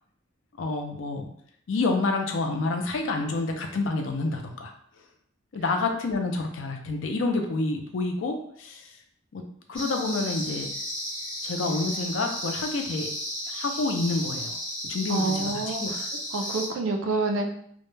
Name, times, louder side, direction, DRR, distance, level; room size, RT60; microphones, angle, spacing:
voice 1, 0.6-1.3 1.7-4.7 5.5-8.9 9.3-9.4 9.7-10.7 11.4-13.1 13.5-14.6 14.8-15.9, left 3 dB, 70° left, 3 dB, 0.4 m, -28 dB
sound 1, 9.7-16.7, equal, 5° left, 0.6 m, -34 dB
voice 2, 15.1-16.1 16.3-17.5, right 3 dB, 75° right, 3 dB, 0.3 m, -28 dB
2.1 x 2.1 x 3.1 m, 0.66 s
head